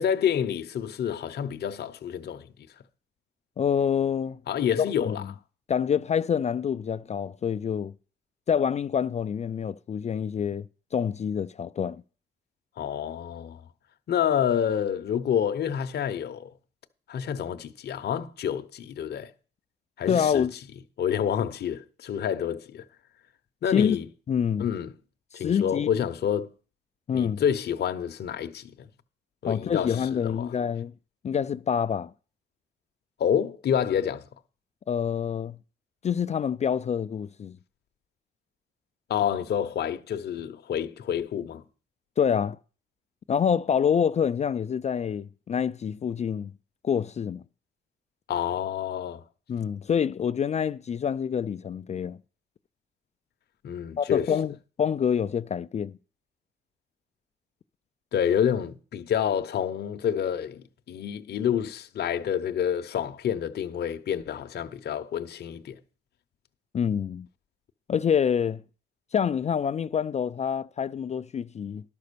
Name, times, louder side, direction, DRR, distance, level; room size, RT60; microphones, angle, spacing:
voice 1, 0.0-2.5 4.5-5.2 12.8-13.6 14.1-16.5 17.1-19.3 20.0-20.5 21.0-22.8 23.6-24.1 24.6-24.9 25.3-26.5 27.1-28.9 29.4-30.5 33.2-34.3 39.1-41.6 48.3-49.2 53.6-54.3 58.1-65.8, left 9 dB, 55° left, 0.8 m, -28 dB
voice 2, 3.6-4.4 5.0-5.2 5.7-7.9 8.5-10.7 10.9-12.0 20.1-20.5 23.7-24.0 24.3-24.6 25.3-25.9 27.1-27.4 29.4-30.9 31.2-32.1 34.9-35.6 36.0-37.6 42.2-42.6 43.3-46.5 46.8-47.4 49.5-52.2 54.0-55.9 66.7-67.3 67.9-68.6 69.1-71.8, left 7 dB, 35° left, 0.4 m, -26 dB
11.5 x 5.2 x 6.8 m
cardioid pair, 90°, 20 cm